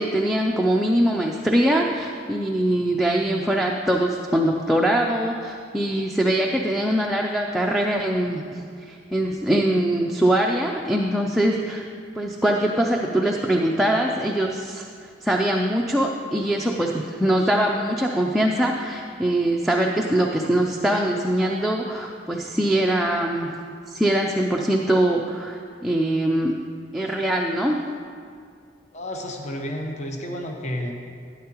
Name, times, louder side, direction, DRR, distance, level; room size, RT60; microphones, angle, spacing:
voice 1, 0.0-11.8 12.2-14.9 15.2-23.5 23.9-26.6 26.9-27.8, right 1 dB, ahead, -1 dB, 0.4 m, -22 dB
voice 2, 28.9-30.9, equal, 40° left, 2 dB, 0.8 m, -31 dB
12.0 x 9.3 x 2.9 m, 2.2 s
head